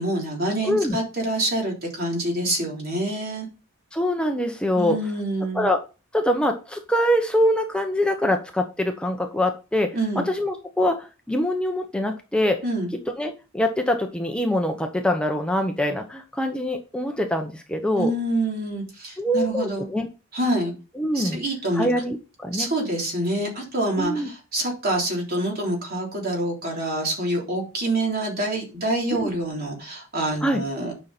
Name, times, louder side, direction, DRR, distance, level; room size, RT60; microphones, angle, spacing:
voice 1, 0.0-3.5 4.8-5.7 9.9-10.3 12.6-12.9 18.0-19.9 20.3-20.7 21.1-21.9 22.5-30.9, right 1 dB, 50° right, -1 dB, 3.4 m, -26 dB
voice 2, 0.6-1.0 3.9-5.0 5.5-5.8 6.1-12.6 13.2-18.1 19.2-20.1 21.0-21.4 21.8-22.7 24.0-24.3 29.1-29.3 30.4-30.6, left 1 dB, 5° left, 4 dB, 0.8 m, -24 dB
9.5 x 5.7 x 4.1 m, 0.31 s
head